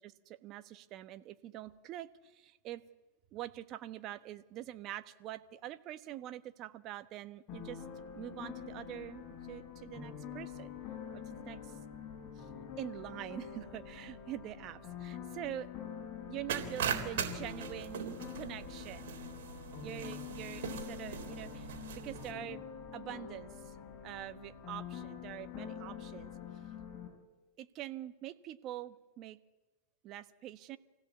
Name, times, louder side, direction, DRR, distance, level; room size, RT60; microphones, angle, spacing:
voice 1, 0.0-2.8 3.3-7.8 8.1-9.2 9.5-10.7 11.1-11.8 12.3-12.5 12.8-15.7 16.3-19.2 19.8-22.6 22.9-23.8 24.0-26.3 27.6-29.4 30.0-30.8, right 13 dB, 40° right, 11 dB, 1.2 m, -45 dB
sound 1, 7.5-27.1, left 8 dB, 35° left, 6.6 m, -46 dB
sound 2, 16.5-22.3, right 7 dB, 75° right, 3.5 m, -40 dB
26.5 x 17.0 x 8.3 m, 1.2 s
hypercardioid pair, 125°, 0 cm